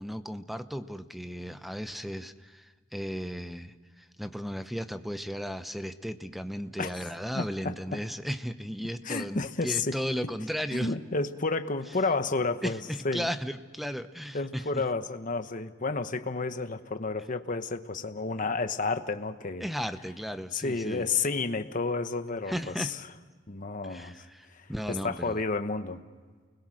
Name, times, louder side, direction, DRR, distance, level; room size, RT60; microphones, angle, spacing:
voice 1, 0.0-10.9 12.6-14.8 19.6-21.1 22.5-22.9 23.8-25.4, equal, ahead, 10 dB, 0.9 m, -35 dB
voice 2, 7.3-8.0 9.0-10.0 10.7-13.3 14.3-19.7 20.5-23.0 23.5-26.0, left 3 dB, 45° left, 9 dB, 1.1 m, -31 dB
29.5 x 21.0 x 6.4 m, 1.5 s
head